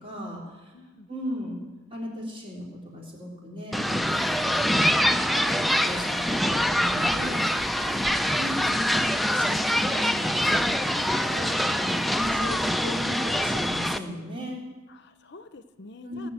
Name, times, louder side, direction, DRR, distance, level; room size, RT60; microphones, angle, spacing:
voice 1, 0.0-0.7 1.1-1.6 1.9-4.7 5.3-7.7 8.0-14.6 16.0-16.3, equal, 25° right, -2 dB, 3.6 m, -36 dB
voice 2, 0.7-1.1 7.8-8.2 10.9-11.4 14.9-16.3, left 3 dB, 60° left, 11 dB, 0.7 m, -46 dB
sound 1, 3.7-14.0, equal, ahead, 0.4 m, -24 dB
17.5 x 6.9 x 8.9 m, 1.2 s
head